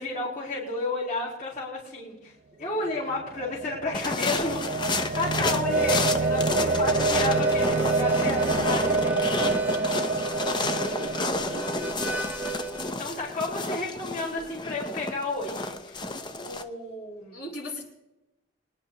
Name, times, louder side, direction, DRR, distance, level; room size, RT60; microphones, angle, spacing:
voice 1, 0.0-2.3 2.6-4.7 5.1-9.2 12.8-17.4, left 2 dB, 50° left, -7 dB, 4.8 m, -32 dB
sound 1, 3.0-13.1, right 3 dB, 45° right, 0.5 m, -28 dB
sound 2, 3.9-16.6, left 2 dB, 25° left, 0.8 m, -31 dB
voice 2, 5.2-5.8 10.6-11.7 17.3-17.8, left 1 dB, 65° left, -4 dB, 6.0 m, -39 dB
Harmonica, 5.6-12.9, right 2 dB, 10° right, 0.7 m, -34 dB
25.0 x 10.5 x 3.0 m, 0.94 s
head